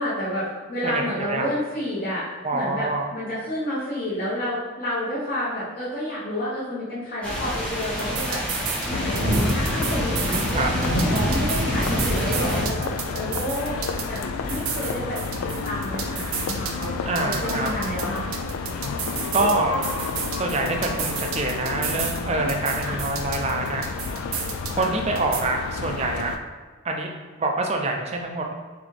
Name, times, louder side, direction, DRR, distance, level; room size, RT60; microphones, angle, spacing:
voice 1, 0.0-2.3 2.5-8.4 8.9-18.2 22.8-23.0 24.8-24.9, equal, 40° left, -10 dB, 1.0 m, -30 dB
voice 2, 0.8-1.5 2.4-3.1 10.3-10.7 17.0-17.7 19.3-19.8 20.3-23.8 24.7-26.4 26.8-27.1 27.4-28.5, right 2 dB, 30° right, 2 dB, 0.4 m, -26 dB
sound 1, 7.2-12.7, equal, 5° left, 0.7 m, -26 dB
sound 2, 7.8-8.9 9.2-10.5 10.8-14.2 14.5-16.9 17.2-19.5 19.8-22.2 22.5-24.9 25.2-25.4, right 7 dB, 80° right, 0.6 m, -32 dB
sound 3, 8.9-26.4, left 4 dB, 90° left, 0.3 m, -31 dB
4.0 x 3.4 x 3.2 m, 1.4 s
head